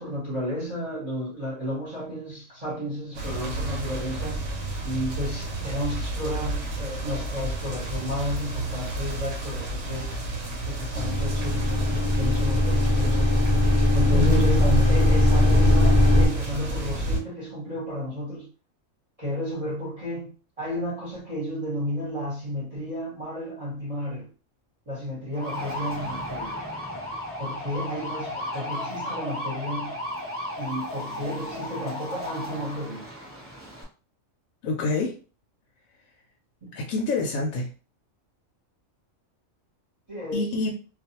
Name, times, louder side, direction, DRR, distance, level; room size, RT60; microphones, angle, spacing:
voice 1, 0.0-4.5 4.8-10.1 10.7-13.5 13.9-18.5 19.2-20.3 20.6-24.3 24.9-26.5 27.4-30.0 30.6-33.1 36.7-36.8 40.1-40.6, equal, 30° right, -6 dB, 0.9 m, -32 dB
sound 1, 3.1-17.2, right 2 dB, 65° right, 1.0 m, -31 dB
sound 2, 10.9-16.3, left 1 dB, 5° left, 1.0 m, -20 dB
sound 3, 25.3-33.8, left 1 dB, 15° right, 0.6 m, -34 dB
voice 2, 34.6-35.2 36.7-37.7 40.3-40.7, left 3 dB, 80° left, 0 dB, 1.0 m, -26 dB
2.4 x 2.3 x 2.8 m, 0.36 s
omnidirectional pair, 1.4 m